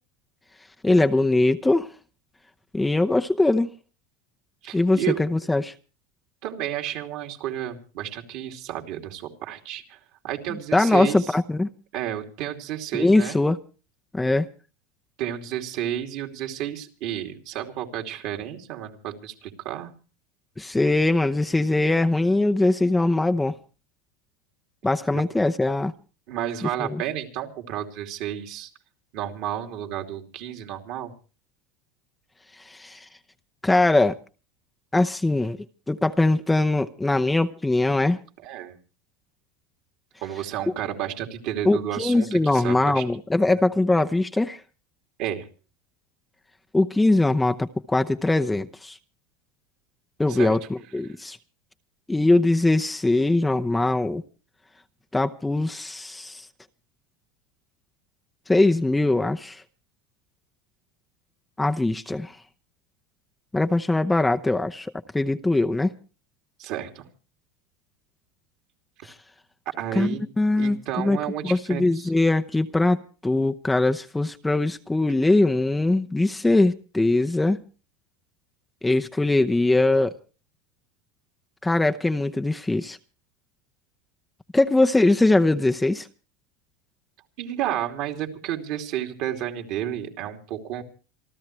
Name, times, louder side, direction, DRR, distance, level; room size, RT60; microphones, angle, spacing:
voice 1, 0.8-1.9 2.7-3.7 4.7-5.7 10.7-11.7 12.9-13.6 14.1-14.5 20.6-23.6 24.8-25.9 26.8-27.0 32.7-33.0 33.6-34.2 34.9-35.6 35.9-38.2 41.6-44.6 46.7-49.0 50.2-51.4 52.1-54.2 55.1-56.4 58.5-59.6 61.6-62.3 63.5-65.9 69.0-69.1 69.9-71.2 71.4-77.6 78.8-80.1 81.6-83.0 84.5-86.1, left 2 dB, 10° left, 0.8 m, -21 dB
voice 2, 4.6-5.2 6.4-10.0 10.2-11.3 11.9-13.4 15.2-19.9 25.1-25.2 26.3-28.7 29.1-31.1 38.4-38.8 40.2-43.0 43.5-43.6 45.2-45.5 50.3-50.6 66.6-67.1 69.8-70.3 70.6-72.1 87.4-90.8, right 11 dB, 60° right, 2.8 m, -31 dB
27.5 x 13.0 x 3.2 m
hypercardioid pair, 100°, 0 cm